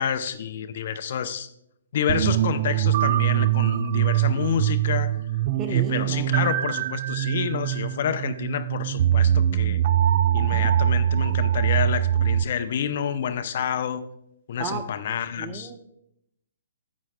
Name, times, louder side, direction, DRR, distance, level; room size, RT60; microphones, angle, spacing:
voice 1, 0.0-1.5 1.9-5.2 5.7-9.8 10.3-14.0 14.5-15.7, left 8 dB, 55° left, 11 dB, 0.5 m, -28 dB
sound 1, 2.1-12.4, right 11 dB, 45° right, 0.3 m, -23 dB
voice 2, 5.6-6.3 10.5-10.7 14.6-14.9 15.4-15.8, right 5 dB, 20° right, 8 dB, 0.8 m, -34 dB
11.0 x 8.3 x 2.2 m, 0.78 s
figure-of-eight pair, 130°, 0 cm